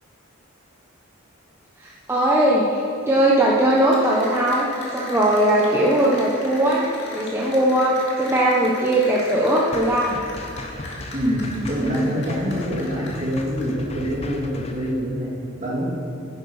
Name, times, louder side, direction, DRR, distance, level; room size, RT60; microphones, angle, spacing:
voice 1, 1.8-4.7 4.9-10.2, right 1 dB, 10° right, -5 dB, 0.9 m, -19 dB
Cheering / Applause, 3.5-13.9, left 2 dB, 55° left, 2.3 m, -39 dB
sound 1, 9.7-14.9, left 1 dB, 30° left, 0.7 m, -37 dB
voice 2, 11.1-15.3 15.6-15.9, equal, 35° right, -4 dB, 2.6 m, -25 dB
9.9 x 8.3 x 5.5 m, 2.7 s
head